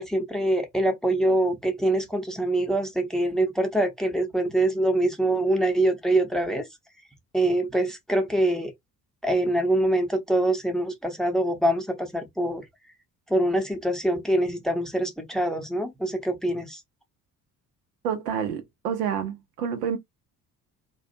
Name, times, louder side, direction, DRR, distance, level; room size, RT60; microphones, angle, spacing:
voice 1, 0.0-6.6 7.3-8.7 9.2-12.6 13.3-16.8, right 1 dB, ahead, 0.7 m, -24 dB
voice 2, 18.0-20.0, right 8 dB, 75° right, 0.6 m, -28 dB
2.4 x 2.2 x 2.6 m
figure-of-eight pair, 45°, 47 cm